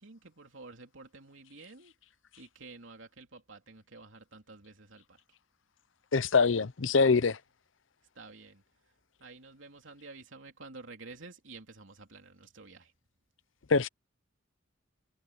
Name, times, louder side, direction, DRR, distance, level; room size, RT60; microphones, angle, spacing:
voice 1, 0.0-1.9 2.4-5.2 8.1-8.6 9.2-12.9, right 3 dB, 75° right, 3.2 m, -50 dB
voice 2, 6.1-7.4 13.7-13.9, left 4 dB, 70° left, 0.7 m, -24 dB
head